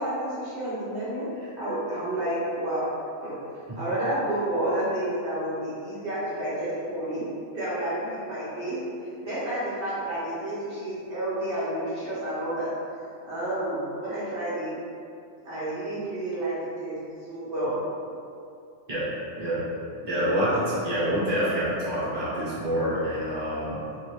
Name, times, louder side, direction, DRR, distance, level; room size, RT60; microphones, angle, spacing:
voice 1, 0.0-2.8 3.2-3.3 3.7-7.3 7.5-8.8 9.2-12.7 13.2-14.7 15.4-17.0 17.3-17.8, right 1 dB, 60° right, -10 dB, 1.0 m, -30 dB
voice 2, 20.0-23.8, equal, 20° right, -11 dB, 0.9 m, -26 dB
2.7 x 2.6 x 3.2 m, 2.5 s
omnidirectional pair, 1.4 m